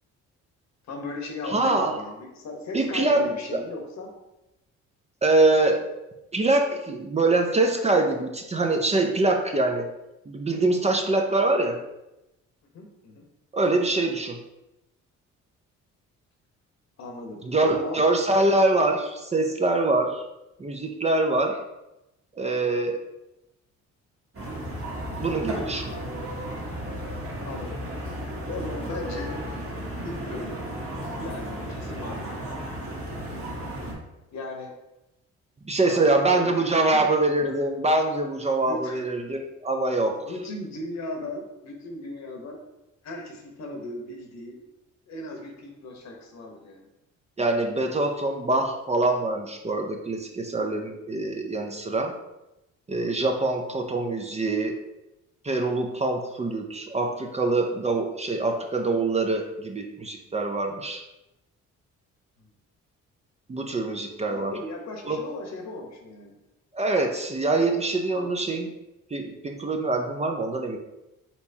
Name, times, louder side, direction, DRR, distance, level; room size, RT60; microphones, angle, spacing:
voice 1, 0.9-4.1 12.7-13.2 17.0-18.0 27.4-27.8 28.5-29.3 30.0-30.6 31.2-32.4 34.3-34.7 35.8-37.6 38.6-39.0 40.2-42.6 43.0-44.6 45.1-46.9 64.3-66.3 68.1-68.3, left 2 dB, 65° left, 2 dB, 1.1 m, -37 dB
voice 2, 1.5-2.0 2.7-3.6 5.2-5.8 6.3-9.9 10.3-11.8 13.5-14.4 17.4-20.2 20.6-21.6 22.4-23.0 25.2-25.9 35.7-40.2 47.4-52.1 52.9-54.8 55.4-61.0 63.5-64.5 65.0-65.2 66.7-68.7 69.1-70.8, right 2 dB, 20° right, 3 dB, 0.5 m, -24 dB
sound 1, 24.3-33.9, equal, 45° right, 1.4 m, -34 dB
4.3 x 4.2 x 2.8 m, 0.94 s
cardioid pair, 90°, 30 cm